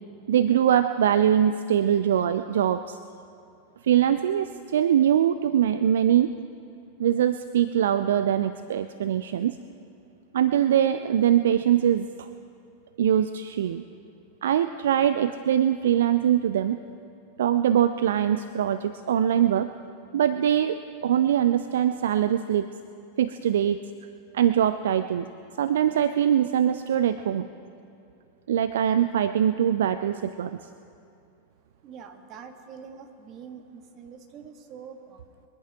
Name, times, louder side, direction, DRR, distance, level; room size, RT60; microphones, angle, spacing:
voice 1, 0.3-3.0 3.8-6.3 7.0-9.6 10.3-12.3 13.0-13.8 14.4-16.8 17.4-19.7 20.1-22.7 23.2-23.8 24.3-25.3 25.6-27.5 28.5-30.5, right 10 dB, 60° right, 11 dB, 0.4 m, -22 dB
voice 2, 31.6-35.4, right 6 dB, 35° right, 5 dB, 1.5 m, -45 dB
23.0 x 10.5 x 4.8 m, 2.6 s
figure-of-eight pair, 90°, 0 cm